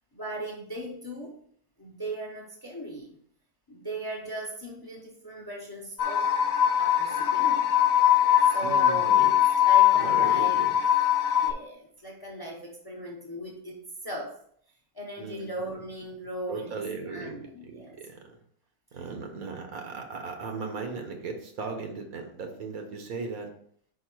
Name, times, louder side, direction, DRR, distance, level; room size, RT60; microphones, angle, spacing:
voice 1, 0.1-1.3 1.8-3.2 3.7-6.3 6.8-7.7 8.5-10.6 11.3-14.4 14.9-16.8 17.1-18.0, right 1 dB, 20° left, -1 dB, 0.8 m, -38 dB
sound 1, 6.0-11.5, left 11 dB, 65° left, 0.6 m, -22 dB
voice 2, 8.6-9.3 9.9-10.7 15.2-15.8 16.5-18.3 18.9-23.5, right 4 dB, 70° right, 4 dB, 1.5 m, -37 dB
4.7 x 4.6 x 4.5 m, 0.63 s
omnidirectional pair, 1.6 m